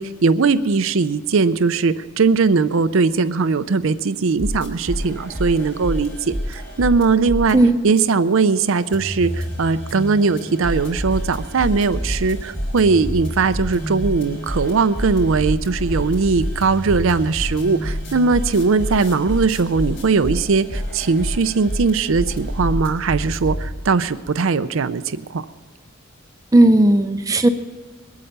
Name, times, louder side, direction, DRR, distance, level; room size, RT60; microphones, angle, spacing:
voice 1, 0.0-7.6 7.8-25.4, right 4 dB, 65° right, 12 dB, 0.5 m, -19 dB
sound 1, 4.4-7.5 8.0-8.1 8.7-23.7, equal, 55° left, 4.0 m, -28 dB
voice 2, 26.5-27.5, right 1 dB, 15° right, 7 dB, 0.5 m, -14 dB
21.0 x 8.6 x 6.7 m, 1.4 s
head